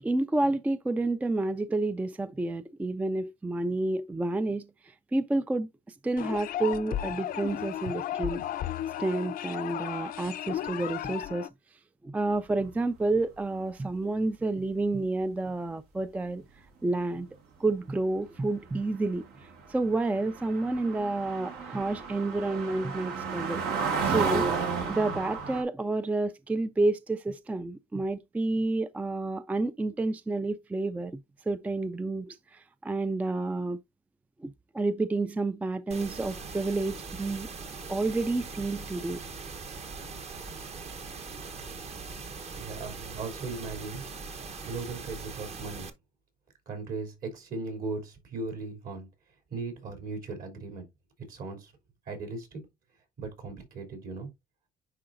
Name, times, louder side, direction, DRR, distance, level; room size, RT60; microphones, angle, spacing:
voice 1, 0.0-4.7 5.1-5.7 6.0-8.4 9.0-11.5 12.0-16.4 16.8-17.3 17.6-19.2 19.7-23.6 24.0-24.5 24.9-31.2 31.5-33.8 34.4-37.5 37.9-39.2, right 2 dB, 10° right, 0.3 m, -29 dB
sound 1, 6.2-11.5, left 11 dB, 55° left, 0.5 m, -34 dB
sound 2, 19.3-19.4 19.6-25.6, right 5 dB, 80° right, 1.9 m, -32 dB
sound 3, 35.9-45.9, right 4 dB, 40° right, 1.0 m, -41 dB
voice 2, 42.6-44.0 44.6-45.9 46.7-49.1 49.5-50.8 51.3-51.7 52.1-52.6 53.2-54.3, right 3 dB, 60° right, 3.2 m, -37 dB
9.9 x 3.8 x 2.5 m
cardioid pair, 110°, 17 cm